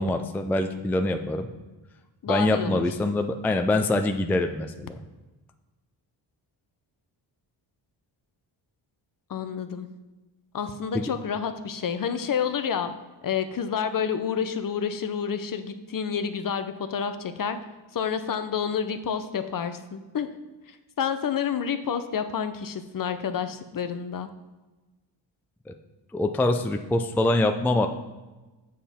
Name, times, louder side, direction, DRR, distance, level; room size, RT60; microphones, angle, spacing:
voice 1, 0.0-1.5 2.3-5.0 10.9-11.0 25.7-25.8 26.1-27.9, left 2 dB, 5° left, 6 dB, 0.4 m, -24 dB
voice 2, 2.2-3.1 9.3-9.9 10.5-12.9 13.2-17.6 17.9-20.3 20.7-24.3, left 7 dB, 45° left, 9 dB, 0.7 m, -29 dB
7.4 x 7.0 x 4.3 m, 1.2 s
cardioid pair, 100°, 47 cm